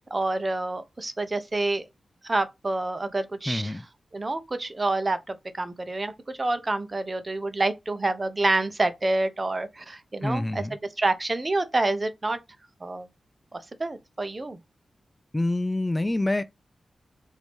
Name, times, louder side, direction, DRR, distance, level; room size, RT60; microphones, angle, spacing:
voice 1, 0.1-1.8 2.2-3.8 4.1-12.4 12.8-13.1 13.5-14.6, right 2 dB, 30° right, 0.7 m, -28 dB
voice 2, 3.5-3.8 10.2-10.8 15.3-16.4, left 2 dB, 20° left, 0.3 m, -26 dB
4.7 x 2.7 x 3.5 m
cardioid pair, 80°, 0 cm